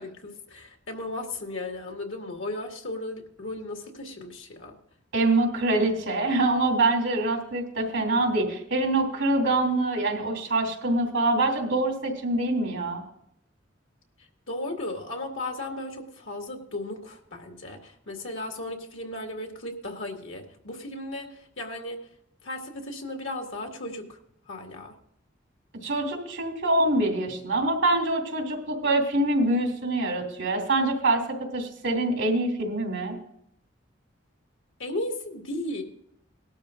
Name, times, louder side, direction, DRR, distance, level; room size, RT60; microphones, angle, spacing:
voice 1, 0.0-4.7 14.5-22.0 22.4-24.2 24.5-24.9 34.8-35.8, left 2 dB, 85° left, 2 dB, 2.1 m, -35 dB
voice 2, 5.1-13.0 25.8-33.2, right 2 dB, 80° right, 2 dB, 2.8 m, -25 dB
18.5 x 12.0 x 2.6 m, 0.72 s
head